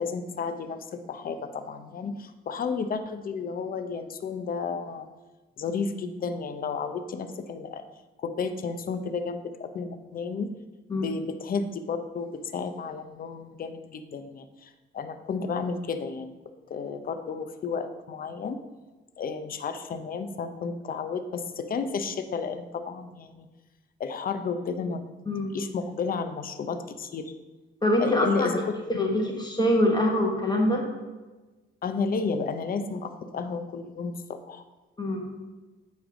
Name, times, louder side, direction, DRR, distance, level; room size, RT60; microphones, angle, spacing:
voice 1, 0.0-5.1 5.6-7.8 8.2-10.5 11.0-16.3 16.7-18.6 19.2-23.5 24.0-25.0 25.5-27.3 28.0-28.7 31.8-34.6, left 5 dB, 45° left, 8 dB, 0.7 m, -32 dB
voice 2, 25.3-25.6 27.8-28.6 28.9-30.9 35.0-35.3, left 1 dB, 20° left, 0 dB, 1.4 m, -24 dB
8.9 x 3.4 x 5.1 m, 1.2 s
cardioid pair, 90°, 20 cm